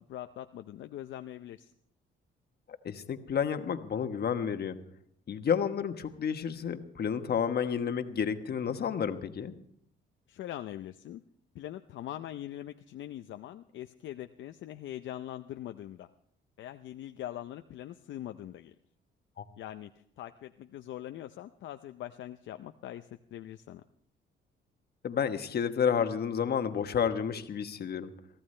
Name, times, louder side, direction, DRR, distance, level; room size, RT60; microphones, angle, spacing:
voice 1, 0.1-1.7 10.3-11.2 11.5-16.1 16.6-18.7 19.6-23.8, left 12 dB, 70° left, 8 dB, 0.6 m, -42 dB
voice 2, 2.8-4.8 5.3-9.5 19.4-19.5 25.0-28.1, left 7 dB, 55° left, 8 dB, 1.2 m, -30 dB
23.0 x 14.5 x 3.3 m, 0.69 s
cardioid pair, 90°, 20 cm